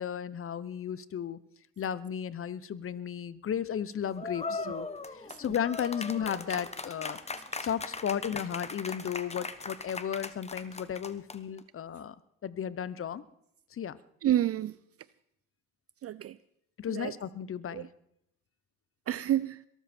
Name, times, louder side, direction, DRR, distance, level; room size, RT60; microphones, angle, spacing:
voice 1, 0.0-1.4 1.8-4.9 5.1-7.2 7.6-12.2 12.4-13.2 13.7-14.0 16.8-17.9, left 8 dB, 45° left, 0.9 m, -34 dB
sound 1, 4.2-11.6, left 3 dB, 20° left, 1.2 m, -39 dB
voice 2, 14.2-14.8 16.0-16.4 16.9-17.2 17.7-17.9 19.1-19.6, right 12 dB, 50° right, 0.5 m, -30 dB
22.5 x 13.0 x 4.4 m
cardioid pair, 90°, 30 cm